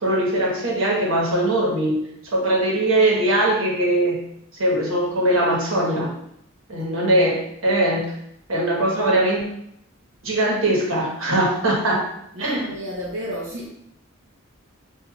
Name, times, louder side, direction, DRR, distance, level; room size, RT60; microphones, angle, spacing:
voice 1, 0.0-2.0 2.3-4.2 4.6-6.1 6.7-8.1 8.5-9.4 10.2-12.1 12.4-12.7, right 1 dB, 75° right, -3 dB, 1.2 m, -21 dB
voice 2, 12.3-13.7, equal, 55° right, -6 dB, 0.7 m, -31 dB
6.0 x 2.6 x 2.3 m, 0.75 s
head